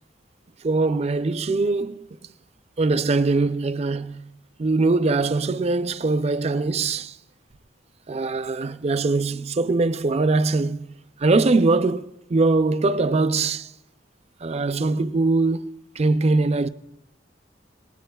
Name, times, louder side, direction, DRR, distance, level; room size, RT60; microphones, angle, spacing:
voice 1, 0.6-2.1 2.8-4.3 4.6-7.2 8.1-10.9 11.2-13.7 14.4-16.7, right 3 dB, 35° right, 0.5 m, -22 dB
26.5 x 19.5 x 2.3 m
head